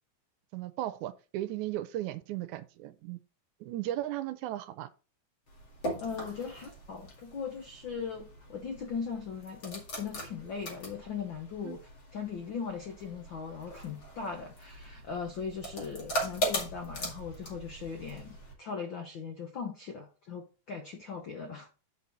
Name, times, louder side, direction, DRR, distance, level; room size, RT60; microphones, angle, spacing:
voice 1, 0.5-3.2 3.6-4.9 11.7-11.8, right 14 dB, 80° right, 1.9 m, -36 dB
sound 1, 5.5-18.5, right 1 dB, 35° left, 2.6 m, -40 dB
voice 2, 6.0-11.8 12.1-21.7, left 6 dB, 85° left, 1.0 m, -39 dB
8.1 x 5.4 x 4.0 m
omnidirectional pair, 3.6 m